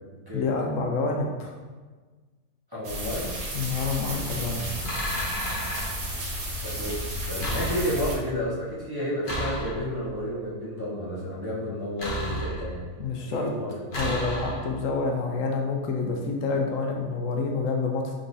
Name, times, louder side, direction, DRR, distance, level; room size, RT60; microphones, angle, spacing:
voice 1, 0.3-1.5 3.5-4.7 13.0-13.5 13.9-18.1, left 4 dB, 75° left, 1 dB, 0.9 m, -28 dB
voice 2, 2.7-3.3 6.6-7.0 7.3-12.9 13.2-13.9, equal, 20° right, -8 dB, 0.8 m, -31 dB
sound 1, 2.8-8.2, equal, 85° right, 1.4 m, -32 dB
sound 2, 4.8-5.9 7.4-8.2 9.2-10.1 12.0-12.9 13.9-14.9, equal, 45° left, 1.1 m, -32 dB
4.6 x 3.9 x 2.7 m, 1.4 s
omnidirectional pair, 1.4 m